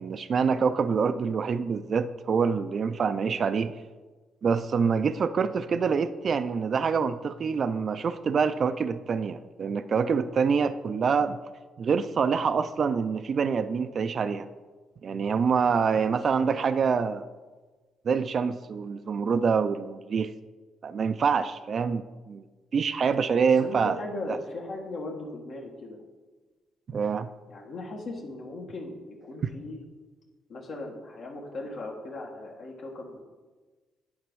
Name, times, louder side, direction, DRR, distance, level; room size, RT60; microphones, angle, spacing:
voice 1, 0.0-3.7 4.4-11.4 11.8-14.5 15.0-17.3 18.0-20.3 20.8-22.0 22.3-22.4 22.7-24.0 24.3-24.4 26.9-27.3, right 6 dB, 50° right, 12 dB, 0.4 m, -26 dB
voice 2, 16.0-16.6 23.4-26.0 27.5-29.8 30.5-33.2, left 2 dB, 65° left, -1 dB, 1.6 m, -38 dB
9.5 x 4.0 x 6.1 m, 1.3 s
cardioid pair, 90°, 0 cm